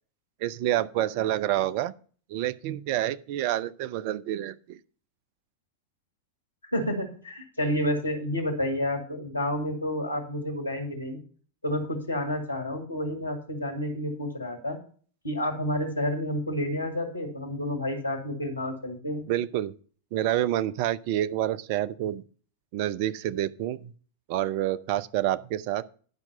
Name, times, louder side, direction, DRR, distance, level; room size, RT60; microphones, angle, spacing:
voice 1, 0.4-1.9 2.3-4.8 19.3-19.7 20.1-22.2 22.7-23.9 24.3-25.8, right 13 dB, 45° right, 16 dB, 0.5 m, -28 dB
voice 2, 6.7-11.2 11.6-14.8 15.2-19.3, left 1 dB, 80° left, 4 dB, 1.9 m, -30 dB
10.5 x 5.9 x 5.4 m, 0.43 s
figure-of-eight pair, 90°, 0 cm